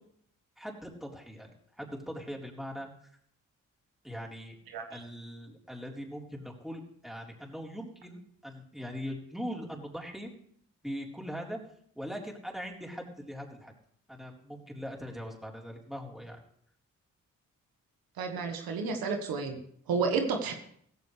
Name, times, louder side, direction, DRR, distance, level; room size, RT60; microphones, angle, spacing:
voice 1, 0.6-3.1 4.0-4.6 4.9-10.3 10.8-11.6 12.0-13.7 14.1-16.4 20.5-20.6, equal, ahead, -1 dB, 4.0 m, -41 dB
voice 2, 18.2-19.6 19.9-20.5, right 4 dB, 85° right, 5 dB, 1.5 m, -30 dB
16.0 x 15.0 x 3.3 m, 0.65 s
supercardioid pair, 40°, 35 cm